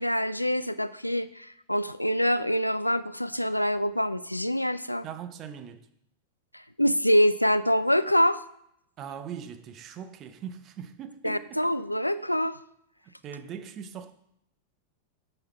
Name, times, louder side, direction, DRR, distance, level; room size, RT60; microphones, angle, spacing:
voice 1, 0.0-5.0 6.5-8.4 11.2-12.6, equal, 90° left, 0.3 m, -25 dB
voice 2, 5.0-5.9 9.0-11.8 13.0-14.1, right 8 dB, 35° right, 0.7 m, -41 dB
6.4 x 5.4 x 5.7 m
figure-of-eight pair, 90°, 0 cm